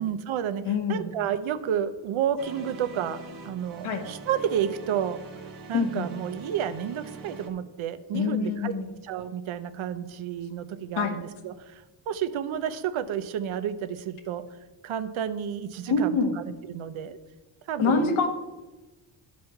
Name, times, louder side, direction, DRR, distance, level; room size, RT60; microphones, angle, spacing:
voice 1, 0.0-5.2 5.7-8.7 9.0-14.4 14.8-17.2 17.7-18.2, right 9 dB, 85° right, 12 dB, 0.8 m, -31 dB
voice 2, 0.6-1.1 3.8-4.0 5.7-6.1 8.1-8.9 11.0-11.1 15.9-16.4 17.8-18.3, left 4 dB, 85° left, 4 dB, 1.3 m, -25 dB
sound 1, 2.4-7.5, right 4 dB, 45° right, 1.1 m, -43 dB
12.0 x 4.2 x 5.8 m, 1.1 s
wide cardioid pair, 170°, 47 cm